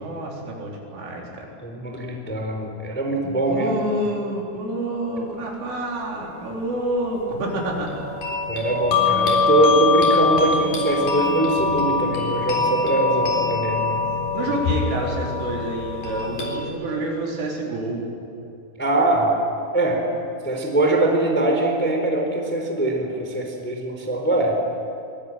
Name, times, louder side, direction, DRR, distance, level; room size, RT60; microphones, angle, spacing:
voice 1, 0.0-1.5 3.4-7.9 14.3-18.0, right 1 dB, 75° right, -2 dB, 6.7 m, -28 dB
voice 2, 1.6-3.8 8.5-14.0 18.8-19.3 19.7-20.0 20.4-24.5, right 2 dB, 5° left, 1 dB, 3.2 m, -22 dB
sound 1, 7.5-16.6, left 4 dB, 40° left, 5.4 m, -23 dB
24.5 x 22.5 x 9.1 m, 2.6 s
omnidirectional pair, 5.8 m